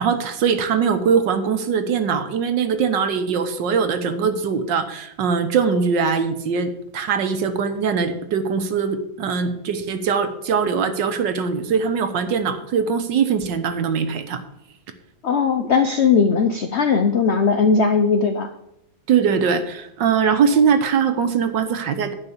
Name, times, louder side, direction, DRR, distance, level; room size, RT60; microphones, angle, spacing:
voice 1, 0.0-14.4 19.1-22.1, right 6 dB, 70° right, 8 dB, 1.6 m, -21 dB
voice 2, 15.2-18.5, left 5 dB, 75° left, 6 dB, 0.6 m, -18 dB
10.5 x 5.4 x 7.0 m, 0.79 s
omnidirectional pair, 2.1 m